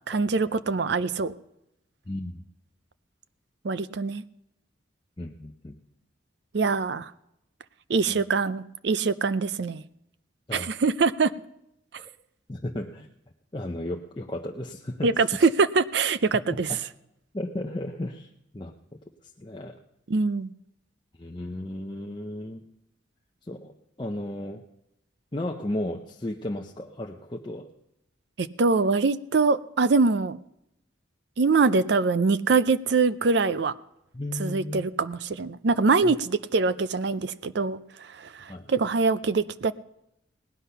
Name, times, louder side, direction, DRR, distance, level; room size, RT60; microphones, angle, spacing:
voice 1, 0.1-1.3 3.6-4.2 6.5-7.1 7.9-9.8 10.5-11.3 15.0-16.7 20.1-20.5 28.4-30.4 31.4-33.7 34.4-39.7, right 4 dB, 55° right, 14 dB, 0.5 m, -24 dB
voice 2, 2.1-2.4 5.2-5.8 8.1-8.2 10.5-10.7 12.0-12.1 12.5-13.1 13.5-15.5 16.5-16.8 17.3-18.3 18.5-18.7 19.4-19.8 21.2-22.6 23.5-24.6 25.3-27.7 34.1-34.9 36.0-36.1 38.5-38.7, left 1 dB, 25° left, 0 dB, 0.6 m, -34 dB
18.0 x 10.0 x 5.6 m, 0.82 s
head